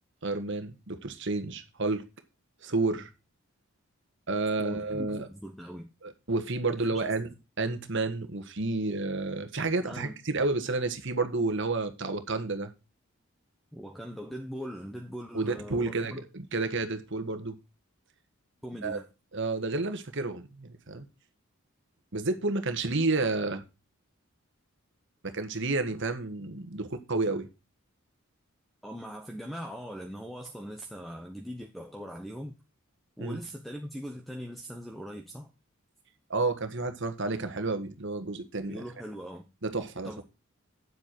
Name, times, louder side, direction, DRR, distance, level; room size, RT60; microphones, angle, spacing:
voice 1, 0.2-2.0 2.6-3.1 4.3-5.3 6.0-7.3 7.6-12.7 15.3-17.6 18.8-19.0 19.3-21.0 22.1-23.6 25.2-27.5 33.2-33.4 36.3-38.8 39.6-40.2, right 3 dB, 55° right, 1.5 m, -30 dB
voice 2, 4.6-5.9 6.8-7.1 9.8-10.1 13.7-16.2 18.6-19.1 28.8-32.6 33.2-35.5 38.7-39.5 40.0-40.2, equal, ahead, 0.9 m, -41 dB
9.4 x 7.8 x 4.6 m
head